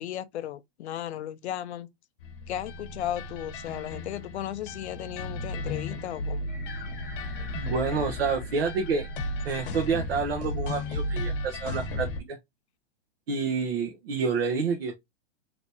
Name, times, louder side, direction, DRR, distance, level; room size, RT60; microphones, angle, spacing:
voice 1, 0.0-1.9 2.5-6.4, left 11 dB, 75° left, 0.5 m, -35 dB
sound 1, 2.2-12.2, left 1 dB, 55° left, 0.9 m, -34 dB
sound 2, 6.5-11.7, left 4 dB, 15° left, 0.4 m, -49 dB
voice 2, 7.5-9.1 9.4-12.4 13.3-15.0, right 5 dB, 65° right, 0.9 m, -28 dB
3.4 x 2.9 x 2.6 m
supercardioid pair, 175°, 33 cm